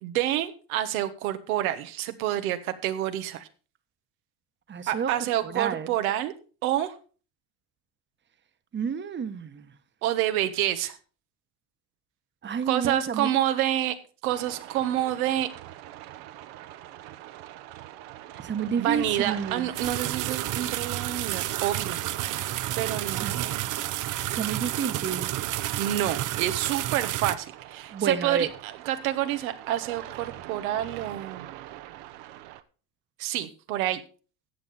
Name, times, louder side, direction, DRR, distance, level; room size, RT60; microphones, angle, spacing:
voice 1, 0.0-3.5 4.9-6.3 6.6-6.9 10.0-11.0 12.7-13.9 14.2-15.5 18.8-22.0 22.8-23.6 25.8-31.5 33.2-34.0, right 12 dB, 90° right, 8 dB, 1.3 m, -28 dB
voice 2, 4.7-5.1 5.4-5.9 8.7-9.7 12.4-13.3 18.4-19.7 23.2-23.4 24.3-25.3 27.9-28.5, right 6 dB, 25° right, 10 dB, 1.2 m, -30 dB
sound 1, 14.3-32.6, right 14 dB, 65° right, 1.0 m, -43 dB
sound 2, 19.7-27.3, right 14 dB, 45° right, 0.8 m, -30 dB
14.0 x 7.7 x 4.1 m, 0.37 s
supercardioid pair, 100°, 42 cm